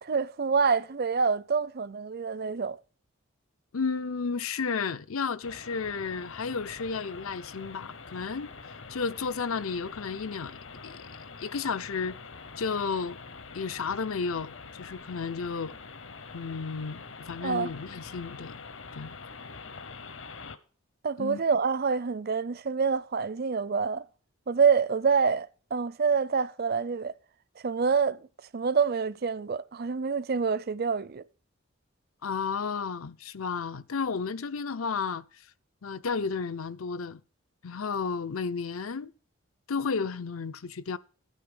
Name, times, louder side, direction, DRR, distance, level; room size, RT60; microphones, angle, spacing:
voice 1, 0.0-2.8 17.4-17.7 21.0-24.0 24.5-27.1 27.6-28.2 28.5-31.2, right 5 dB, 45° right, 0.5 m, -26 dB
voice 2, 3.7-11.0 11.4-12.2 12.6-13.2 13.5-15.7 16.3-18.6 18.9-19.2 21.2-21.4 32.2-35.5 35.8-37.2 37.6-39.1 39.7-41.0, left 5 dB, 75° left, 0.6 m, -33 dB
sound 1, 5.4-20.6, left 4 dB, 60° left, 1.0 m, -45 dB
14.0 x 9.1 x 5.1 m
head